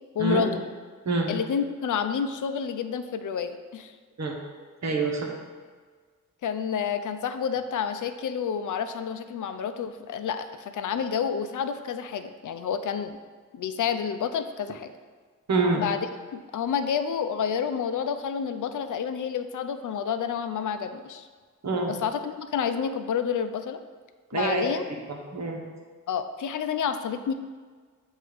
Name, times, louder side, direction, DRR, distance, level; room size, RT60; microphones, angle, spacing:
voice 1, 0.1-0.6 1.3-3.9 6.4-13.2 13.5-14.9 15.8-16.0 16.3-21.3 21.9-23.8 24.3-24.9 26.1-27.3, left 7 dB, 65° left, 9 dB, 0.5 m, -29 dB
voice 2, 4.8-5.3 15.5-15.8 21.6-21.9 24.3-24.8 25.1-25.6, right 3 dB, 55° right, 0 dB, 1.1 m, -26 dB
7.7 x 2.7 x 4.9 m, 1.6 s
cardioid pair, 70°, 33 cm